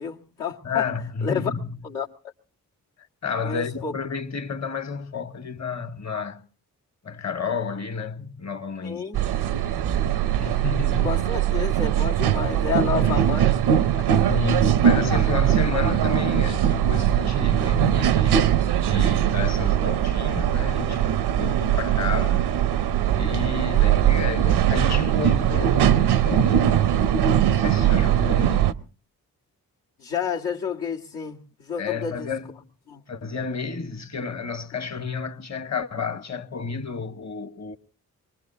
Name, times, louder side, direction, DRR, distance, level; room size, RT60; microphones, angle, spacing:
voice 1, 0.0-0.9 1.2-1.5 1.8-2.1 3.4-3.9 8.8-9.2 11.0-13.5 14.0-14.2 23.7-23.9 30.0-32.3 32.9-33.0, left 7 dB, 85° left, 2.0 m, -30 dB
voice 2, 0.6-1.8 3.2-6.4 7.0-9.1 10.4-11.1 12.9-13.2 14.3-22.5 23.1-26.8 27.6-28.8 31.8-32.5 33.1-37.8, left 5 dB, 45° left, 1.4 m, -31 dB
sound 1, 9.1-28.7, right 10 dB, 85° right, 0.7 m, -21 dB
24.0 x 20.5 x 2.8 m
supercardioid pair, 45°, 38 cm